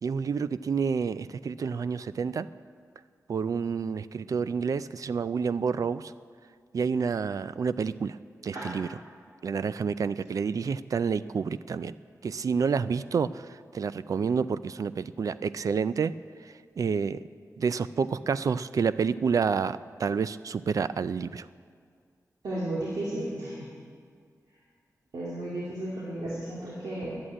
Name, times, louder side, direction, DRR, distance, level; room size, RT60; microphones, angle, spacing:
voice 1, 0.0-2.5 3.3-6.1 6.7-8.2 8.4-8.9 9.4-11.9 12.2-16.1 16.4-17.2 17.6-21.5, right 6 dB, 65° right, 15 dB, 0.4 m, -29 dB
voice 2, 22.4-23.6 25.1-27.2, right 1 dB, 85° right, -6 dB, 2.1 m, -33 dB
11.0 x 8.7 x 8.7 m, 2.1 s
wide cardioid pair, 130°, 6 cm